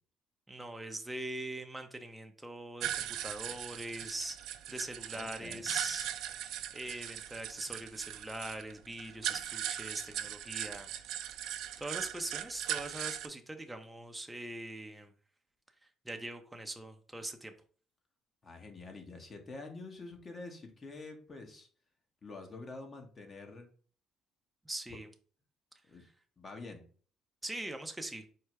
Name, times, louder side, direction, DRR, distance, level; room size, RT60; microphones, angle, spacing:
voice 1, 0.5-6.1 6.3-10.9 11.4-15.1 16.0-17.5 24.6-25.1 27.4-28.2, right 1 dB, 10° right, 5 dB, 0.6 m, -42 dB
sound 1, 2.8-13.3, right 11 dB, 75° right, 0.4 m, -39 dB
voice 2, 5.1-5.7 18.4-21.7 22.2-23.7 24.9-25.0 25.9-26.1 26.4-26.8, left 3 dB, 35° left, 3 dB, 1.1 m, -47 dB
4.5 x 2.1 x 4.7 m, 0.43 s
cardioid pair, 90°, 0 cm